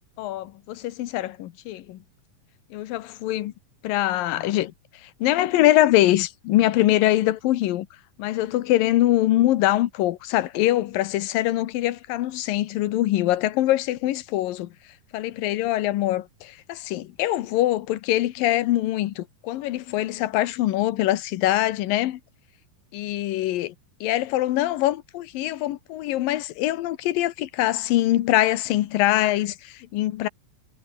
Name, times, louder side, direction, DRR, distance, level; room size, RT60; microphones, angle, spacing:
voice 1, 0.2-2.0 2.7-3.5 3.8-4.7 5.0-7.9 8.2-14.7 15.1-22.2 22.9-23.7 24.0-30.3, left 15 dB, 80° left, 2.8 m, -23 dB
omnidirectional pair, 4.0 m